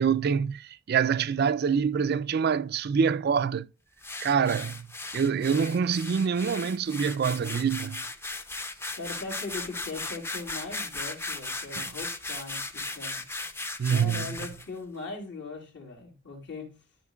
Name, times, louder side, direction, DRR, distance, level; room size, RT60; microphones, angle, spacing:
voice 1, 0.0-3.7 4.2-4.9 5.1-8.0 11.8-11.9 13.8-14.4, right 6 dB, 55° right, 0.4 m, -26 dB
sound 1, 4.0-14.7, left 2 dB, 15° left, 0.6 m, -37 dB
voice 2, 8.9-13.2 13.9-16.8, left 3 dB, 65° left, 3.2 m, -40 dB
13.5 x 5.1 x 2.3 m
head